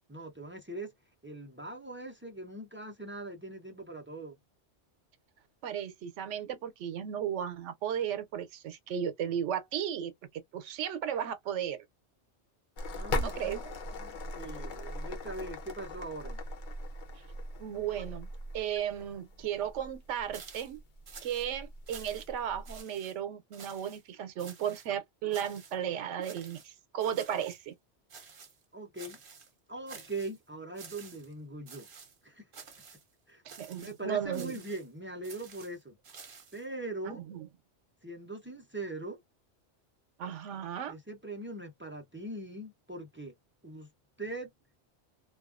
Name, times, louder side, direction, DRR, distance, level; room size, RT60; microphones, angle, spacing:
voice 1, 0.1-0.9 1.2-4.3 12.9-13.6 13.9-16.4 28.7-29.2 29.7-31.9 32.2-32.4 33.3-33.4 33.8-36.0 36.5-37.2 38.0-39.2 40.9-43.3 43.6-43.9 44.2-44.5, right 2 dB, 20° right, 0.3 m, -41 dB
voice 2, 5.6-11.8 13.2-13.8 17.6-18.3 18.5-20.8 21.2-27.7 33.4-34.6 37.0-37.5 40.2-40.9, right 9 dB, 85° right, 0.9 m, -35 dB
sound 1, 12.8-22.8, left 1 dB, 50° left, 0.6 m, -40 dB
sound 2, 20.3-20.8 21.1-21.5 21.9-22.4 22.6-23.1 23.5-24.0 24.4-24.9 25.3-25.8 26.2-26.7 27.0-27.6 28.1-28.6 29.0-29.5 29.9-30.4 30.7-31.3 31.7-32.2 32.5-33.0 33.5-34.0 34.3-34.9 35.2-36.6, right 5 dB, 50° right, 0.9 m, -50 dB
2.3 x 2.2 x 2.3 m
omnidirectional pair, 1.2 m